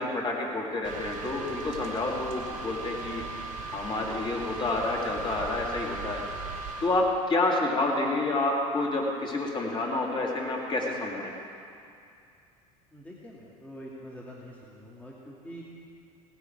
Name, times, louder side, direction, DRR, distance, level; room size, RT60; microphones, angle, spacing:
voice 1, 0.0-3.2 3.7-6.2 6.8-11.3, left 2 dB, 25° left, -2 dB, 2.8 m, -29 dB
sound 1, 0.8-7.2, right 3 dB, 40° right, 1.5 m, -38 dB
voice 2, 12.9-15.6, equal, 5° left, -5 dB, 2.2 m, -45 dB
18.0 x 10.0 x 4.8 m, 2.4 s
figure-of-eight pair, 75°, 19 cm